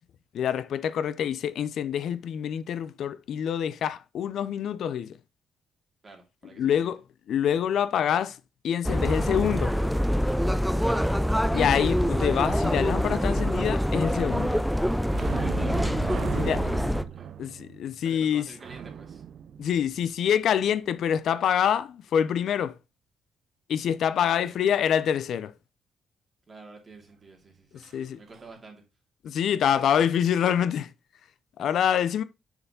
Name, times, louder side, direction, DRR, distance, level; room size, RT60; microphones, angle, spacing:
voice 1, 0.3-5.2 6.6-7.0 7.3-8.4 8.6-9.7 11.5-14.6 16.2-16.6 17.4-18.5 19.6-22.8 23.7-25.5 27.9-28.2 29.2-30.9 31.6-32.2, left 9 dB, 70° left, 0.5 m, -26 dB
voice 2, 6.0-6.9 10.8-11.1 15.5-16.9 17.1-17.3 18.0-19.2 24.2-24.7 26.5-27.8 28.2-28.8 31.6-31.7, right 3 dB, 30° right, 2.7 m, -49 dB
sound 1, 8.8-17.0, equal, ahead, 0.5 m, -25 dB
sound 2, 15.1-20.5 27.8-28.0 28.3-28.5, right 9 dB, 60° right, 0.4 m, -37 dB
6.6 x 4.9 x 3.8 m
cardioid pair, 90°, 0 cm